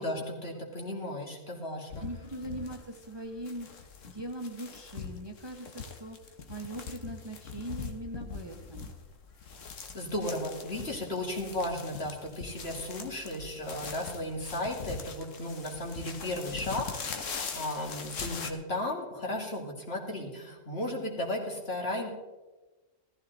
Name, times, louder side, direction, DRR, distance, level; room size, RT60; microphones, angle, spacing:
voice 1, 0.0-2.1 9.9-22.1, left 1 dB, 55° left, 0 dB, 2.6 m, -35 dB
sound 1, 1.9-18.5, left 5 dB, 80° left, 1.6 m, -42 dB
voice 2, 2.0-3.7 4.0-6.2 6.5-8.9, right 1 dB, 20° right, 3 dB, 1.1 m, -40 dB
15.0 x 14.5 x 4.0 m, 1.2 s
omnidirectional pair, 1.3 m